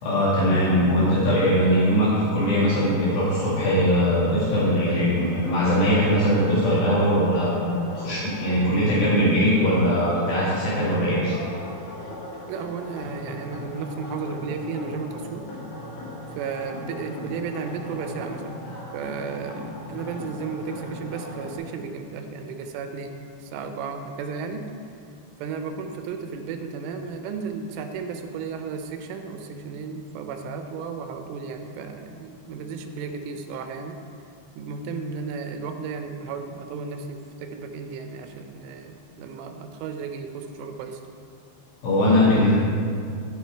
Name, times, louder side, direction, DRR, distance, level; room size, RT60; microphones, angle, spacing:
voice 1, 0.0-11.4 41.8-42.6, equal, 65° left, -8 dB, 3.7 m, -21 dB
sound 1, 2.9-21.6, left 1 dB, 85° left, 4.8 m, -39 dB
voice 2, 12.5-15.5 16.4-18.6 18.9-24.7 25.4-34.0 34.6-41.0, right 5 dB, 85° right, 6 dB, 3.3 m, -34 dB
15.5 x 5.6 x 4.5 m, 2.4 s
omnidirectional pair, 5.6 m